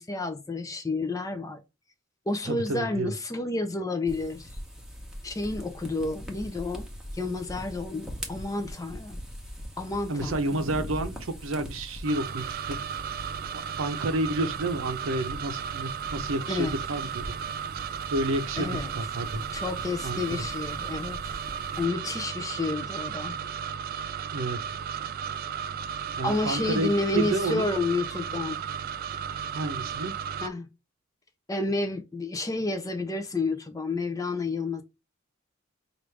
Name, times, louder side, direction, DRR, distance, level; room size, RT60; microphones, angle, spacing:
voice 1, 0.0-1.6 2.3-4.6 5.2-6.9 7.1-9.2 9.8-10.5 16.5-16.7 18.6-18.9 19.5-21.3 21.8-23.4 26.2-28.6 30.4-30.7 31.5-34.8, left 3 dB, 15° left, 0.4 m, -30 dB
voice 2, 2.5-3.1 10.1-12.9 13.5-17.2 18.1-19.4 20.0-20.4 24.3-24.6 26.2-27.7 29.5-30.1, right 2 dB, 75° right, 0.6 m, -30 dB
sound 1, 4.1-21.9, equal, 5° right, 0.9 m, -42 dB
sound 2, 12.0-30.5, right 7 dB, 45° right, 0.3 m, -34 dB
4.8 x 2.5 x 3.2 m
head